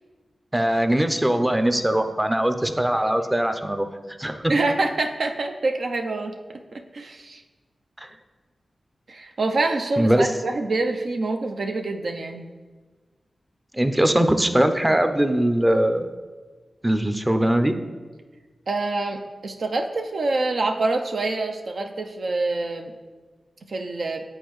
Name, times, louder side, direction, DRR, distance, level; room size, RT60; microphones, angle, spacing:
voice 1, 0.5-3.9 4.2-4.5 8.0-8.1 10.0-10.3 13.7-16.1 16.8-17.7, right 1 dB, 15° right, 8 dB, 0.5 m, -21 dB
voice 2, 4.5-6.3 6.9-7.4 9.1-12.5 18.7-22.9 23.7-24.2, right 2 dB, 70° right, 4 dB, 0.5 m, -26 dB
8.9 x 4.3 x 3.1 m, 1.4 s
cardioid pair, 65°, 0 cm